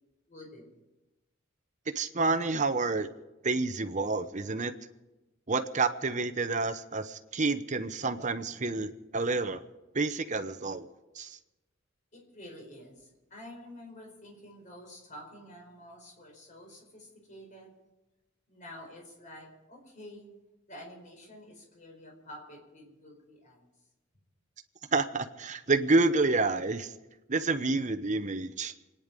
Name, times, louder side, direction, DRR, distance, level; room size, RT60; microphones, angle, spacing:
voice 1, 0.3-0.8 12.1-17.7 18.5-20.3 20.7-23.7, left 1 dB, 40° left, 1 dB, 4.6 m, -49 dB
voice 2, 1.9-3.1 3.4-4.7 5.5-9.6 9.9-10.9 11.2-11.4 24.9-26.9 27.3-28.7, right 3 dB, 40° right, 10 dB, 0.9 m, -29 dB
27.0 x 10.0 x 5.4 m, 1.0 s
head